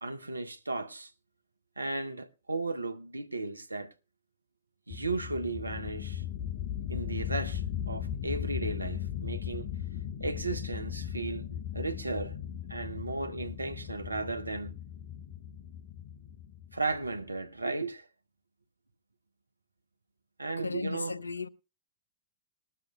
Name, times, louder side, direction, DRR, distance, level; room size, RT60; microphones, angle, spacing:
voice 1, 0.0-1.1 1.8-3.9 4.9-6.2 6.9-9.7 10.2-11.5 11.7-12.4 12.7-14.8 16.7-18.1 20.4-21.2, right 3 dB, 80° right, 0.7 m, -35 dB
sound 1, 4.9-17.3, left 9 dB, 45° left, 0.8 m, -38 dB
voice 2, 20.6-21.5, left 4 dB, 80° left, 0.5 m, -35 dB
19.5 x 12.5 x 2.3 m
figure-of-eight pair, 100°, 0 cm